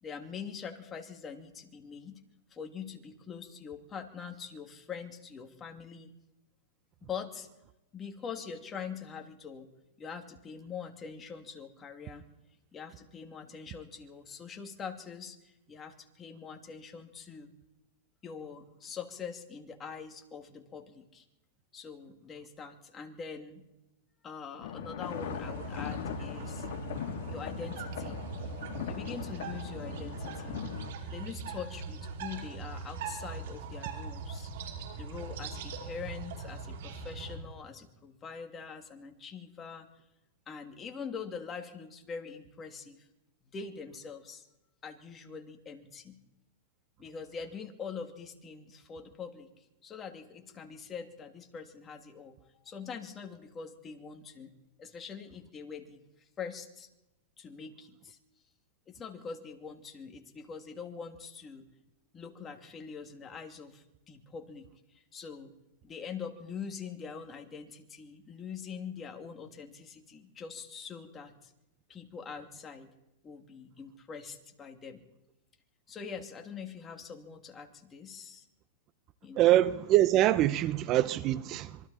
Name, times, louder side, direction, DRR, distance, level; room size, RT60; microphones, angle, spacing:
voice 1, 0.0-2.2 2.5-6.1 7.0-7.5 7.9-9.7 10.0-12.2 12.7-17.5 18.2-21.2 21.7-23.6 24.2-26.7 27.3-28.2 28.9-30.6 31.1-34.5 35.0-39.9 40.5-43.1 43.5-44.5 44.8-46.2 47.0-49.5 49.8-52.4 52.6-54.5 54.8-56.0 56.4-56.9 57.4-58.2 58.9-61.7 62.1-65.5 65.8-71.5 71.9-72.9 73.2-75.0 75.9-78.5 79.2-79.4, left 6 dB, 20° left, 2.7 m, -43 dB
sound 1, 24.6-30.9, left 9 dB, 65° left, 3.1 m, -40 dB
sound 2, 25.0-37.4, right 4 dB, 70° right, 5.3 m, -41 dB
voice 2, 79.3-81.8, right 14 dB, 40° right, 0.8 m, -24 dB
26.5 x 23.5 x 4.4 m
hypercardioid pair, 130°, 0 cm